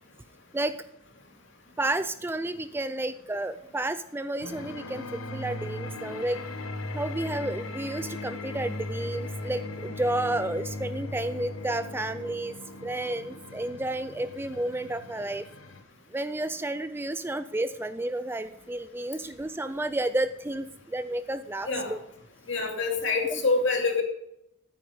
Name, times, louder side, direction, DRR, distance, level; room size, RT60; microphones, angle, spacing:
voice 1, 1.8-6.4 6.9-12.5 12.8-15.5 16.1-22.0 23.3-23.4, right 1 dB, 10° right, 12 dB, 0.4 m, -31 dB
sound 1, 4.4-15.8, left 2 dB, 85° left, 1.3 m, -38 dB
voice 2, 22.5-24.0, left 3 dB, 60° left, 1 dB, 2.8 m, -26 dB
14.5 x 9.3 x 5.3 m, 0.81 s
head